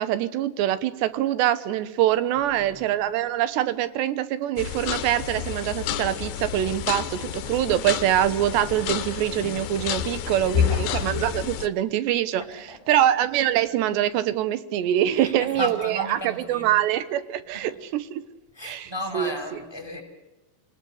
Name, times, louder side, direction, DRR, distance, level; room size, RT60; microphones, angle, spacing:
voice 1, 0.0-12.4 12.9-18.2 18.6-19.3, right 12 dB, 85° right, 14 dB, 3.3 m, -24 dB
voice 2, 2.4-2.8 10.0-11.0 12.4-13.0 15.1-16.7 17.5-17.6 18.5-20.0, left 1 dB, 5° left, 3 dB, 5.5 m, -35 dB
sound 1, 4.6-11.7, left 9 dB, 70° left, 2.7 m, -29 dB
27.0 x 19.5 x 8.0 m, 1.0 s
omnidirectional pair, 4.9 m